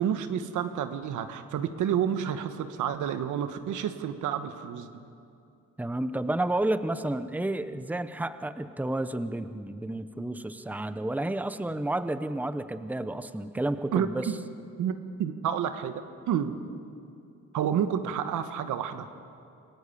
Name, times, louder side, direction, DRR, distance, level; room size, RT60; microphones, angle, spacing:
voice 1, 0.0-4.9 13.9-14.4 14.8-16.5 17.5-19.1, right 9 dB, 80° right, 9 dB, 1.4 m, -30 dB
voice 2, 5.8-14.3, right 1 dB, 5° right, 11 dB, 0.9 m, -31 dB
27.5 x 16.0 x 8.5 m, 2.6 s
cardioid pair, 90°, 30 cm